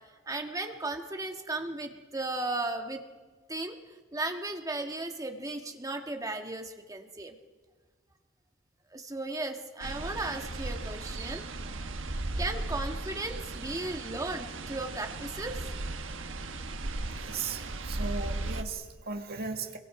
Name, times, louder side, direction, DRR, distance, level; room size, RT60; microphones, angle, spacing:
voice 1, 0.3-3.0 3.5-3.8 4.1-7.3 8.9-11.4 12.4-15.6, right 2 dB, 15° right, 4 dB, 1.7 m, -35 dB
sound 1, 9.8-18.6, right 2 dB, 70° right, 1.4 m, -36 dB
voice 2, 17.0-19.8, right 4 dB, 50° right, 4 dB, 1.9 m, -37 dB
26.5 x 23.0 x 4.9 m, 1.3 s
head